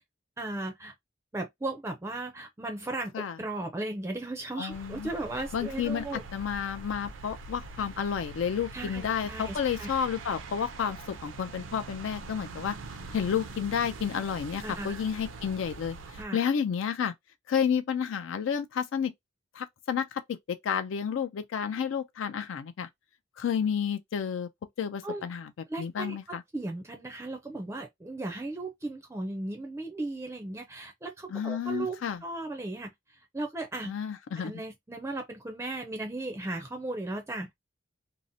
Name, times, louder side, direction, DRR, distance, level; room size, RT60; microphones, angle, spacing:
voice 1, 0.4-0.9 1.3-6.2 8.7-9.9 14.6-15.0 16.2-16.4 25.0-25.2 25.7-32.9 33.3-33.9 34.4-37.5, right 2 dB, 15° right, 0.4 m, -36 dB
voice 2, 4.6-5.1 5.5-12.8 13.1-16.0 16.3-17.1 17.5-19.1 19.6-22.9 23.4-24.5 24.8-25.5 25.8-26.4 31.3-32.2 33.8-34.5, left 7 dB, 80° left, 0.4 m, -31 dB
sound 1, 4.7-16.3, right 3 dB, 80° right, 0.4 m, -43 dB
2.7 x 2.0 x 2.6 m
head